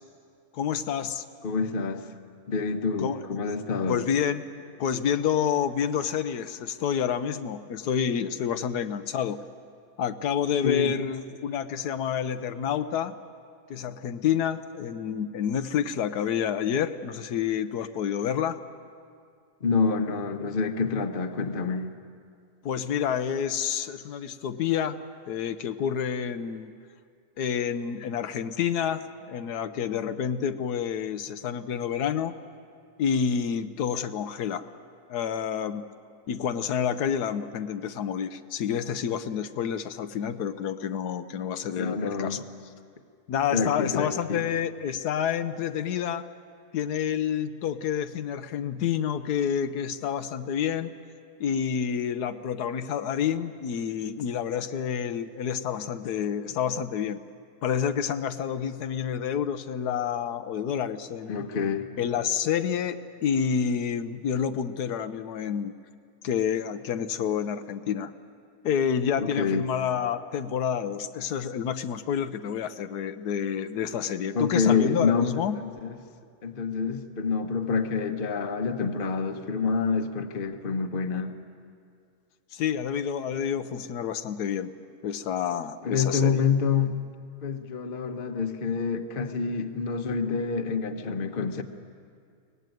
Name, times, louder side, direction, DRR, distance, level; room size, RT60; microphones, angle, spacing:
voice 1, 0.5-1.2 3.0-3.2 3.9-4.4 4.8-9.4 10.0-13.1 13.7-18.6 22.6-25.0 25.3-26.7 27.4-32.4 33.0-34.7 35.1-35.9 36.3-42.4 43.3-46.2 46.7-50.9 51.4-57.2 57.6-61.5 62.0-65.7 66.2-68.1 68.6-75.6 82.5-84.7 85.0-86.4, left 8 dB, 85° left, 10 dB, 1.4 m, -28 dB
voice 2, 1.4-2.1 2.5-4.0 10.6-10.9 19.6-21.9 41.8-42.4 43.5-44.4 61.3-61.9 69.2-69.7 74.3-76.0 76.4-81.3 85.8-87.0 87.4-91.6, left 5 dB, 40° left, 6 dB, 1.1 m, -27 dB
23.5 x 18.5 x 9.2 m, 2.3 s
omnidirectional pair, 1.6 m